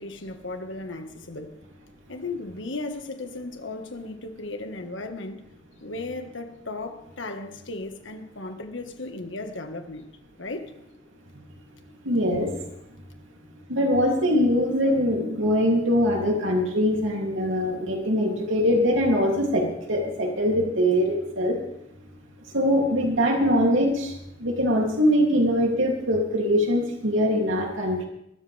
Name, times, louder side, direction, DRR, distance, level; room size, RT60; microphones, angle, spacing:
voice 1, 0.0-1.5 2.1-5.4 5.8-10.1 10.4-10.7, left 2 dB, 70° left, 1.6 m, -35 dB
voice 2, 12.0-12.5 13.7-21.6 22.5-24.1 24.4-28.1, equal, 80° right, 2.9 m, -22 dB
22.5 x 13.5 x 3.5 m
head